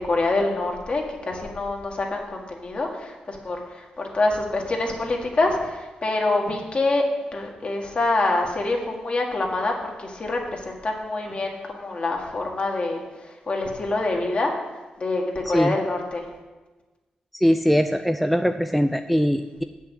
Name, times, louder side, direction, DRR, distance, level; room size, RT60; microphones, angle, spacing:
voice 1, 0.0-7.0 7.3-14.5 15.0-16.3, left 2 dB, 45° left, 1 dB, 1.8 m, -26 dB
voice 2, 17.3-19.6, equal, ahead, 7 dB, 0.4 m, -21 dB
7.9 x 6.5 x 6.4 m, 1.2 s
cardioid pair, 75°, 3 cm